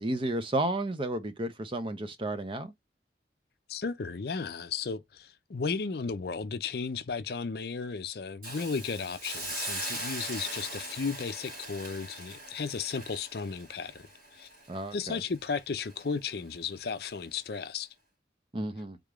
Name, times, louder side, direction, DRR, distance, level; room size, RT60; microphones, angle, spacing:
voice 1, 0.0-2.7 14.7-15.2 18.5-19.0, right 1 dB, 30° right, 0.6 m, -32 dB
voice 2, 3.7-14.1 14.3-14.5 14.9-17.9, left 5 dB, 55° left, 0.5 m, -34 dB
Hiss, 8.4-15.5 15.9-16.0, right 1 dB, 50° right, 1.9 m, -40 dB
3.7 x 3.4 x 2.4 m
head